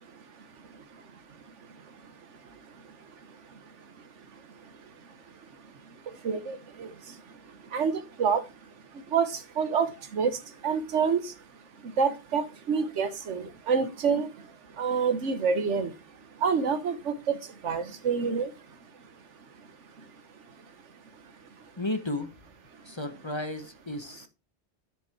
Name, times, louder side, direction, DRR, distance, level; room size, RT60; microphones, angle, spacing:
voice 1, 6.2-6.9 7.7-8.4 9.1-11.3 12.0-14.3 14.8-15.9 16.4-17.4 17.6-18.5, right 6 dB, 85° right, 1.4 m, -27 dB
voice 2, 21.8-22.3 22.8-24.3, left 2 dB, 25° left, 0.9 m, -33 dB
10.0 x 5.2 x 4.6 m
omnidirectional pair, 1.2 m